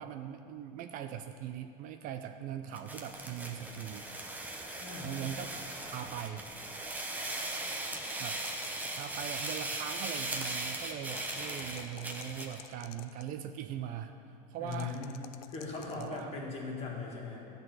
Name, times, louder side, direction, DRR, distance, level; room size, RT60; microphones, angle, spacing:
voice 1, 0.0-4.1 5.0-6.5 8.2-8.4 9.0-14.1 14.5-15.0 16.0-16.3, right 10 dB, 45° right, 7 dB, 0.4 m, -41 dB
sound 1, 2.7-12.6, right 2 dB, 10° right, 0.8 m, -39 dB
voice 2, 4.8-5.3 14.6-15.2 15.5-17.5, left 4 dB, 30° left, -2 dB, 1.9 m, -39 dB
sound 2, 7.9-9.5 11.0-13.3 14.7-16.2, left 12 dB, 65° left, 0.5 m, -52 dB
12.0 x 4.0 x 7.9 m, 2.6 s
supercardioid pair, 135°, 20 cm